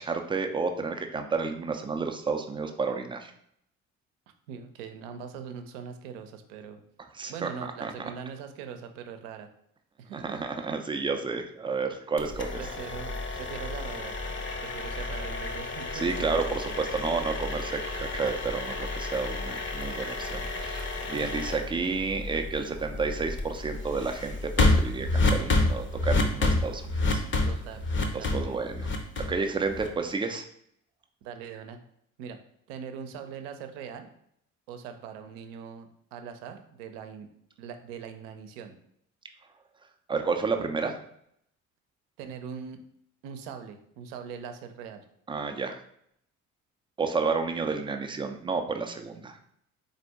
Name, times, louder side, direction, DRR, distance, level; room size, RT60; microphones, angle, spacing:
voice 1, 0.0-3.3 7.1-7.5 7.8-7.9 10.1-12.6 15.9-27.2 28.3-28.9 29.3-30.5 40.1-41.0 45.3-45.8 47.0-49.4, right 4 dB, 10° right, 6 dB, 0.5 m, -31 dB
voice 2, 4.5-6.8 7.3-9.5 10.0-10.4 12.6-14.2 14.6-16.8 21.1-21.3 27.5-28.6 31.2-31.8 32.2-32.4 32.7-34.1 34.7-37.3 37.6-38.8 42.2-42.8 43.2-45.0, right 7 dB, 60° right, 7 dB, 0.7 m, -41 dB
sound 1, 12.2-30.1, left 2 dB, 30° left, 0.8 m, -30 dB
4.2 x 2.6 x 4.6 m, 0.70 s
figure-of-eight pair, 50°, 41 cm